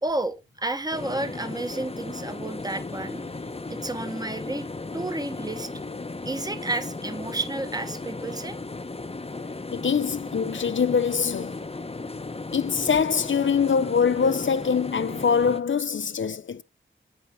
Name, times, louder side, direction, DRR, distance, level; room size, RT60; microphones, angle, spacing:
voice 1, 0.0-3.2 3.7-4.7 4.9-5.7 6.2-8.6, right 2 dB, 20° right, 1.3 m, -31 dB
sound 1, 0.9-15.6, left 3 dB, 30° left, 1.0 m, -36 dB
voice 2, 9.7-11.6 12.5-16.6, left 6 dB, 70° left, 0.8 m, -23 dB
11.5 x 5.8 x 4.2 m
wide cardioid pair, 80°, 21 cm